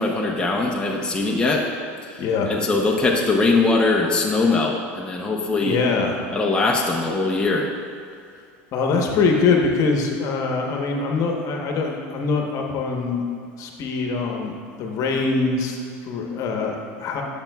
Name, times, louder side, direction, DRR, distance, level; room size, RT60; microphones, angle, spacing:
voice 1, 0.0-1.6 2.5-5.8 6.3-7.7, left 3 dB, 15° left, -2 dB, 0.8 m, -21 dB
voice 2, 2.2-2.6 5.6-6.2 8.7-13.2 13.6-17.2, left 4 dB, 55° left, 1 dB, 1.1 m, -23 dB
11.5 x 6.9 x 2.3 m, 2.2 s
supercardioid pair, 100°, 7 cm